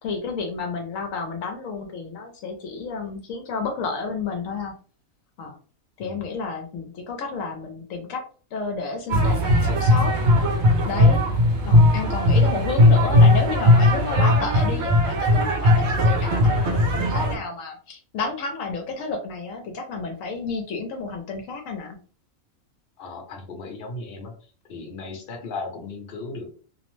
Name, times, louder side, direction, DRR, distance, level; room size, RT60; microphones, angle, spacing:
voice 1, 0.0-4.7 5.4-5.6 6.0-8.2 8.5-10.1 10.8-11.2 11.7-22.0, left 4 dB, 75° left, 3 dB, 0.9 m, -31 dB
sound 1, 9.1-17.4, left 1 dB, 60° right, 0.8 m, -18 dB
voice 2, 23.0-24.3 24.7-26.5, left 3 dB, 50° left, 2 dB, 0.8 m, -36 dB
2.6 x 2.0 x 3.0 m, 0.40 s
omnidirectional pair, 1.5 m